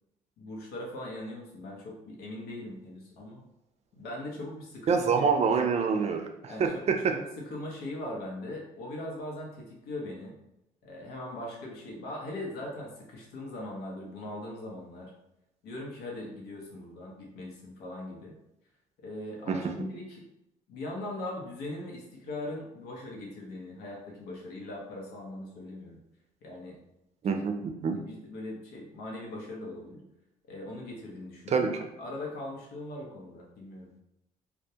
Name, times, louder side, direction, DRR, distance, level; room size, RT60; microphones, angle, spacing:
voice 1, 0.4-3.4 3.9-5.2 6.5-10.3 10.8-15.1 15.6-18.3 19.0-20.2 20.7-26.0 26.4-26.8 27.9-30.0 30.5-31.7 32.0-34.0, left 1 dB, 80° left, -2 dB, 0.7 m, -40 dB
voice 2, 4.9-7.1 19.5-19.6 27.2-28.0 31.5-31.8, right 5 dB, 40° right, 5 dB, 0.5 m, -26 dB
2.2 x 2.1 x 2.8 m, 0.85 s
supercardioid pair, 75°, 16 cm